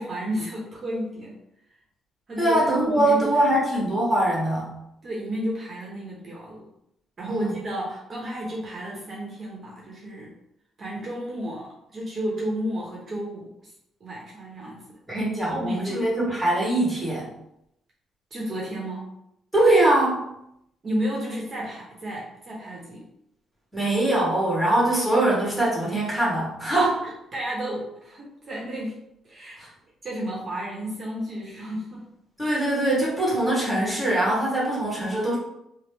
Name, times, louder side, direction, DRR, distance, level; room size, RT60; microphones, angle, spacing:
voice 1, 0.0-1.4 2.3-3.3 5.0-6.7 7.2-10.3 10.8-13.7 14.0-14.8 15.5-16.1 18.3-19.1 20.8-23.1 27.0-29.0 29.2-29.6 30.0-32.0, equal, 45° right, -4 dB, 0.9 m, -32 dB
voice 2, 2.4-4.7 7.3-7.5 15.1-17.3 19.5-20.2 23.7-27.0 29.6-29.7 32.4-35.4, right 1 dB, 5° right, -6 dB, 1.4 m, -22 dB
3.1 x 2.1 x 3.2 m, 0.80 s
cardioid pair, 90°, 0 cm